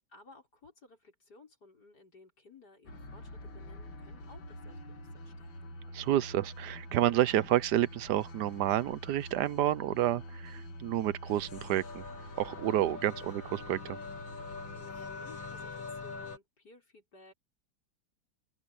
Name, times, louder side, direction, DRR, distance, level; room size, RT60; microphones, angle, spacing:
voice 1, 0.1-5.7 13.0-13.5 14.7-17.3, left 3 dB, 55° left, 6.6 m, -57 dB
sound 1, 2.9-16.4, left 2 dB, 80° left, 3.2 m, -44 dB
voice 2, 5.9-12.0 12.4-14.0, right 13 dB, 70° right, 1.1 m, -29 dB
open air
omnidirectional pair, 2.1 m